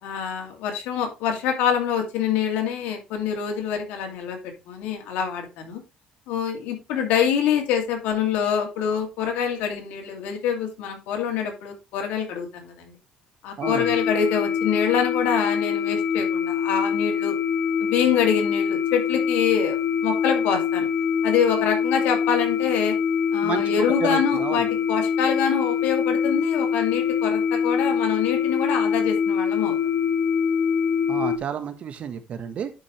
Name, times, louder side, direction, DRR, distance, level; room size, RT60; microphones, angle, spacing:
voice 1, 0.0-5.8 6.3-13.0 13.4-17.4 17.8-19.8 20.0-20.9 21.2-23.0 23.3-29.8, left 7 dB, 90° left, 4 dB, 2.5 m, -25 dB
sound 1, 13.6-31.4, left 7 dB, 70° left, 0.9 m, -24 dB
voice 2, 13.6-13.9 23.4-24.7 31.1-32.7, right 7 dB, 50° right, 10 dB, 1.4 m, -31 dB
10.5 x 5.3 x 3.2 m, 0.27 s
cardioid pair, 105°, 3 cm